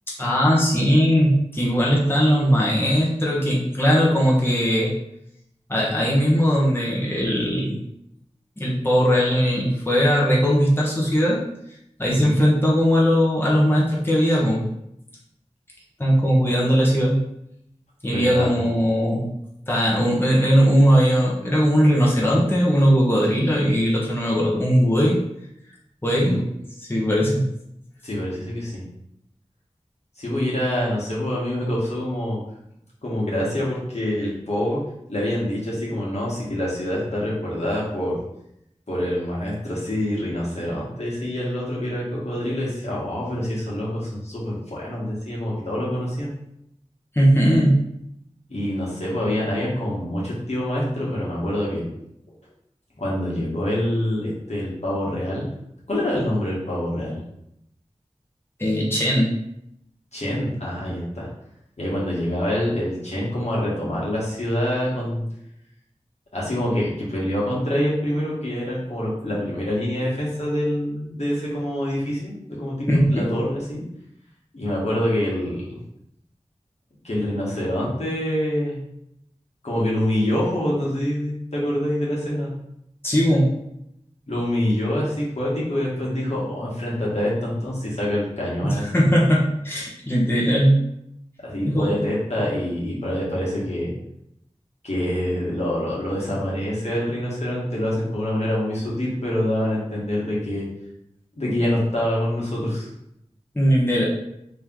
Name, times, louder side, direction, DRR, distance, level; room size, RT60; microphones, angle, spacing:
voice 1, 0.2-4.9 5.7-7.8 8.6-11.4 12.0-14.6 16.0-17.2 18.0-19.3 19.7-25.2 26.0-26.4 26.9-27.4 47.1-47.8 58.6-59.3 72.9-73.3 83.0-83.6 88.6-90.8 91.7-92.0 103.5-104.1, equal, 20° left, -5 dB, 1.0 m, -19 dB
voice 2, 12.1-12.4 18.1-18.7 26.2-26.4 28.0-28.8 30.2-32.4 33.0-34.8 35.1-38.2 38.9-46.3 48.5-51.8 53.0-55.4 55.9-57.2 60.1-61.3 61.8-65.2 66.3-73.8 74.5-75.8 77.0-78.8 79.6-82.5 84.3-89.0 91.4-93.9 94.8-100.7 101.4-102.9, left 1 dB, 70° left, -6 dB, 1.4 m, -26 dB
3.2 x 2.9 x 3.7 m, 0.78 s
wide cardioid pair, 40°, 12 cm